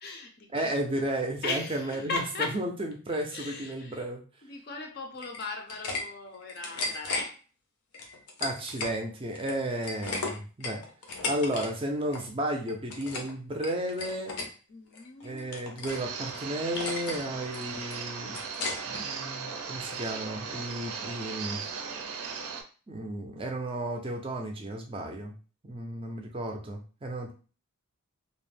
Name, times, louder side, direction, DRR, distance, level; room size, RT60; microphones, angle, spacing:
voice 1, 0.0-0.7 1.4-2.6 3.3-4.0 4.5-7.4 14.7-15.5, left 3 dB, 45° left, 0.5 m, -37 dB
voice 2, 0.5-4.2 8.4-10.8 11.2-14.3 15.2-18.4 18.9-21.6 22.9-25.3 25.6-27.3, right 1 dB, 25° right, 0.4 m, -33 dB
sound 1, 5.2-6.0 6.3-7.2 7.9-9.0 9.3-11.7 11.9-12.3 12.7-13.3 13.6-14.5 14.9-16.0 16.3-16.4 16.8-17.2 17.5-19.0, left 3 dB, 85° left, 0.6 m, -35 dB
sound 2, 15.9-22.6, right 5 dB, 85° right, 0.5 m, -37 dB
2.4 x 2.0 x 3.2 m
head